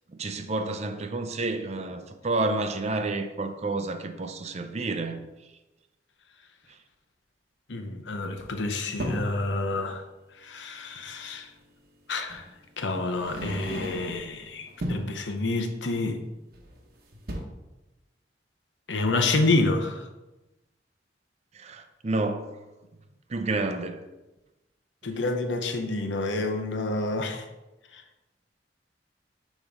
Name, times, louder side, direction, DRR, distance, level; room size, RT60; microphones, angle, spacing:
voice 1, 0.2-5.2 21.5-22.5 23.3-24.0, right 2 dB, 35° right, 0.5 m, -30 dB
voice 2, 7.7-10.0 10.4-11.5 12.1-12.4 12.8-16.2 18.9-20.0 25.0-27.4 27.9-28.0, left 2 dB, 80° left, 0.7 m, -28 dB
sound 1, 8.4-9.4 11.1-11.2 12.3-12.5 13.1-14.3 14.7-15.2 16.5-16.9 17.1-17.4, equal, 55° right, 0.9 m, -35 dB
7.0 x 3.1 x 5.2 m
head